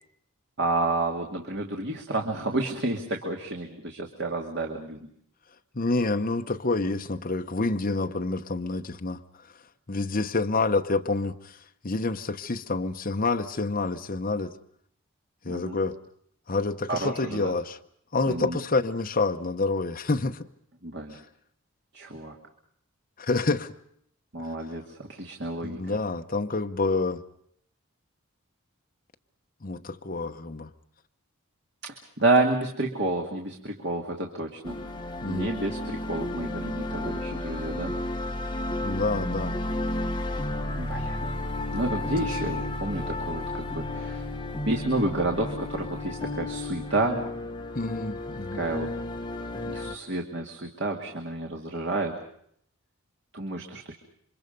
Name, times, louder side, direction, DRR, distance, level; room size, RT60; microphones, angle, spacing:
voice 1, 0.6-5.1 15.5-15.8 16.9-17.5 18.3-18.6 20.8-21.2 21.9-22.4 24.3-24.8 25.1-25.8 31.8-34.8 35.3-37.9 40.8-41.2 41.7-44.3 44.7-47.2 48.5-48.9 49.7-52.2 53.3-53.9, right 2 dB, 50° right, 1 dB, 2.3 m, -30 dB
voice 2, 5.7-9.2 9.9-11.6 11.8-14.5 15.4-15.9 16.5-17.8 18.1-20.5 21.1-21.2 23.2-23.7 24.4-24.5 25.6-27.2 29.6-30.7 35.2-35.5 38.8-39.6 47.7-48.6, left 3 dB, 40° left, 5 dB, 0.9 m, -28 dB
sound 1, 34.6-49.9, left 1 dB, 20° left, 1.4 m, -32 dB
28.5 x 25.0 x 5.3 m, 0.67 s
head